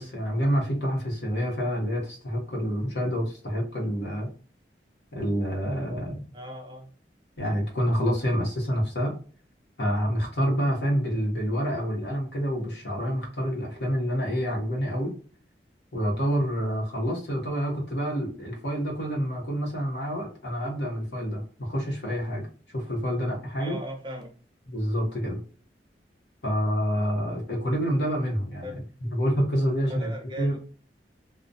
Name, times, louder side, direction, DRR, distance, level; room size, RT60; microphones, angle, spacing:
voice 1, 0.0-4.3 5.1-6.3 7.4-9.2 9.8-15.1 15.9-22.5 22.7-23.8 24.7-25.4 26.4-28.8 29.1-30.6, equal, 70° left, -1 dB, 1.0 m, -27 dB
voice 2, 6.3-6.9 23.6-24.3 28.6-28.7 30.0-30.6, right 1 dB, 25° right, 2 dB, 0.5 m, -38 dB
2.3 x 2.2 x 2.6 m, 0.41 s
head